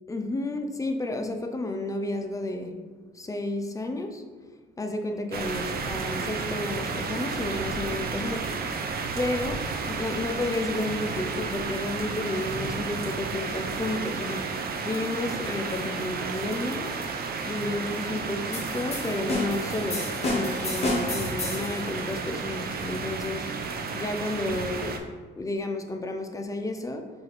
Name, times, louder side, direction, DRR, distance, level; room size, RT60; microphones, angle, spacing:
voice 1, 0.1-2.8 3.1-4.3 4.8-8.5 9.1-9.6 10.0-14.6 14.8-17.0 17.4-23.5 23.9-25.1 25.4-27.1, left 2 dB, 15° left, 5 dB, 0.5 m, -31 dB
sound 1, 5.3-25.0, right 4 dB, 50° right, 0.5 m, -32 dB
sound 2, 18.5-21.8, left 2 dB, 30° left, 1.1 m, -30 dB
4.7 x 2.5 x 4.4 m, 1.4 s
cardioid pair, 90°, 20 cm